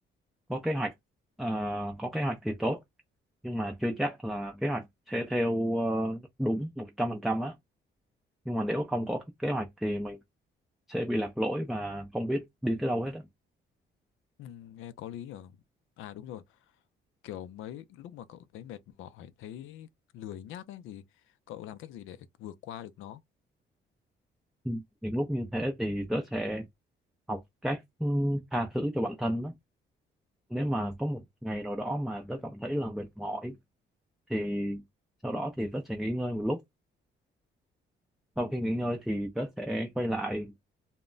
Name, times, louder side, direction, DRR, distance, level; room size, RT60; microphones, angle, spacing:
voice 1, 0.5-0.9 1.4-2.8 3.4-7.5 8.5-10.2 10.9-13.2 24.6-26.7 27.3-29.5 30.5-33.6 34.3-34.8 35.2-36.6 38.4-40.5, equal, ahead, 0.4 m, -31 dB
voice 2, 14.4-15.6 16.0-16.4 17.2-19.9 20.1-21.0 21.5-23.2, left 11 dB, 85° left, 0.4 m, -43 dB
2.1 x 2.0 x 3.7 m
cardioid pair, 90°, 20 cm